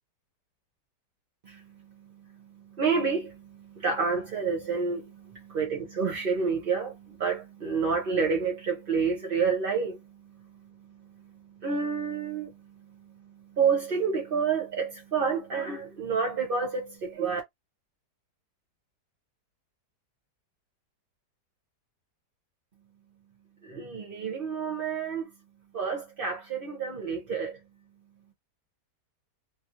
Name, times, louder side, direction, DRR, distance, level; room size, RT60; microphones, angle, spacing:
voice 1, 2.7-10.0 11.6-12.5 13.6-17.4 23.6-25.3 25.7-27.6, right 5 dB, 40° right, 0.9 m, -29 dB
2.9 x 2.6 x 2.9 m
omnidirectional pair, 1.8 m